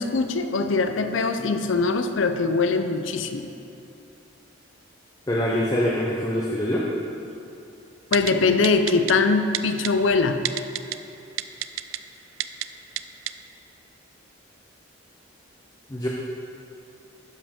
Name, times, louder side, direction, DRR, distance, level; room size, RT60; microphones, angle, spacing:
voice 1, 0.0-3.5 8.1-10.4, left 4 dB, 70° left, 8 dB, 0.5 m, -22 dB
voice 2, 5.3-6.9 15.9-16.1, equal, 20° left, -4 dB, 0.6 m, -24 dB
Typing, 8.1-8.3 8.6-9.1 9.5-9.9 10.5-11.0 11.4-12.0 12.4-12.7 13.0-13.1 13.3-13.4, right 14 dB, 85° right, 0.3 m, -27 dB
12.0 x 5.0 x 3.6 m, 2.6 s
head